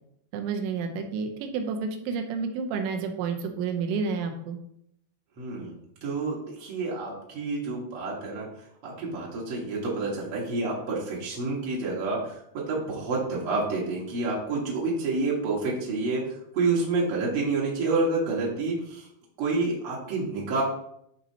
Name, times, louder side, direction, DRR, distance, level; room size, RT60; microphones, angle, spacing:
voice 1, 0.3-4.6, right 5 dB, 90° right, 4 dB, 3.2 m, -30 dB
voice 2, 5.4-5.7 6.0-6.3 6.6-8.5 8.8-12.2 12.7-16.2 16.5-19.0 19.4-20.6, right 3 dB, 75° right, -5 dB, 1.3 m, -28 dB
12.5 x 4.3 x 2.8 m, 0.74 s
omnidirectional pair, 5.1 m